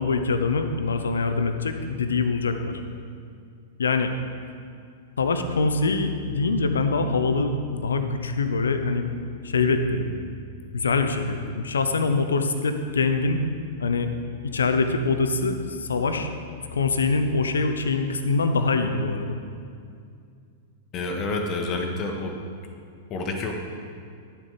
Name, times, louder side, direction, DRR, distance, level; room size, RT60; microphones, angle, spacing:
voice 1, 0.0-2.8 3.8-4.1 5.2-9.1 9.4-10.2 10.7-13.4 13.8-14.1 14.5-16.3 16.7-19.4, left 4 dB, 70° left, 8 dB, 0.8 m, -24 dB
voice 2, 20.9-22.3 23.1-23.5, left 3 dB, 30° left, 3 dB, 1.4 m, -28 dB
11.5 x 7.6 x 5.0 m, 2.3 s
figure-of-eight pair, 100°, 0 cm